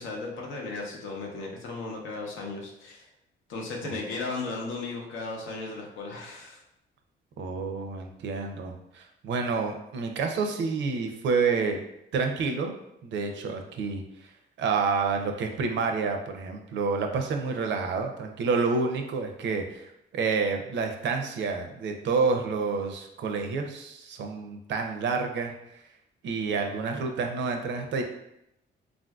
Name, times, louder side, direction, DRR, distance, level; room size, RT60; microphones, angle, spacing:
voice 1, 0.0-3.1 3.5-6.6, left 3 dB, 80° left, 0 dB, 0.7 m, -36 dB
voice 2, 7.4-11.8 12.1-12.7 13.0-14.3 14.6-25.5 26.2-28.0, right 4 dB, 65° right, 4 dB, 0.5 m, -29 dB
3.5 x 2.5 x 2.3 m, 0.81 s
cardioid pair, 90°, 20 cm